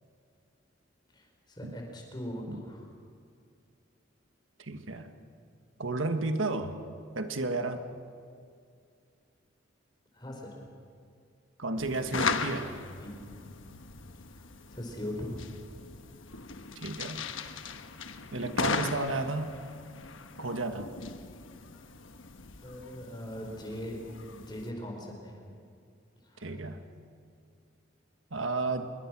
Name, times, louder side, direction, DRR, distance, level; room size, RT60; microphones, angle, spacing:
voice 1, 1.1-2.9 10.1-10.6 13.0-13.5 14.3-15.4 22.6-25.4 26.2-26.7, equal, 20° left, 1 dB, 4.5 m, -41 dB
voice 2, 4.6-5.1 5.8-6.8 7.1-7.8 11.6-12.7 16.7-17.3 18.3-19.6 20.4-20.9 26.4-26.8 28.3-28.9, right 2 dB, 90° right, 7 dB, 1.6 m, -32 dB
sound 1, 11.8-24.7, left 5 dB, 85° left, 1.2 m, -38 dB
26.5 x 22.0 x 6.2 m, 2.3 s
head